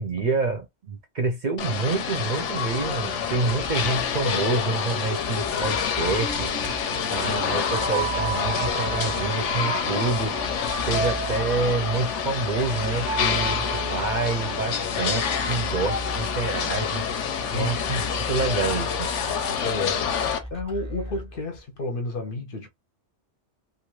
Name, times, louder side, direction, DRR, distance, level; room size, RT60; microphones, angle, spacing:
voice 1, 0.0-6.5 7.1-10.3 10.9-17.0 17.5-19.1, right 3 dB, 50° right, 0.6 m, -27 dB
sound 1, 1.6-20.4, left 7 dB, 85° left, 1.0 m, -27 dB
sound 2, 2.1-21.8, equal, 5° left, 0.6 m, -39 dB
sound 3, 5.8-16.9, right 6 dB, 90° right, 0.9 m, -35 dB
voice 2, 17.5-17.9 19.6-22.7, left 2 dB, 55° left, 0.8 m, -32 dB
2.5 x 2.4 x 3.0 m
omnidirectional pair, 1.2 m